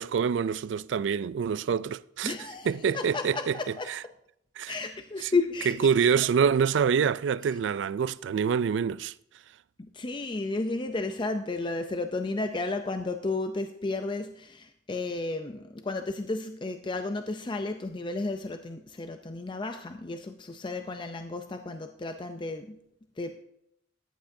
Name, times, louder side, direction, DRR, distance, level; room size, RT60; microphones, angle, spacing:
voice 1, 0.0-2.3 2.7-3.6 3.9-4.0 4.6-4.7 5.2-5.3 5.8-9.1, right 6 dB, 85° right, 0.3 m, -26 dB
voice 2, 2.2-3.9 4.7-6.1 9.8-22.8 23.2-23.4, left 3 dB, 25° left, 0.5 m, -33 dB
14.5 x 10.0 x 2.7 m
head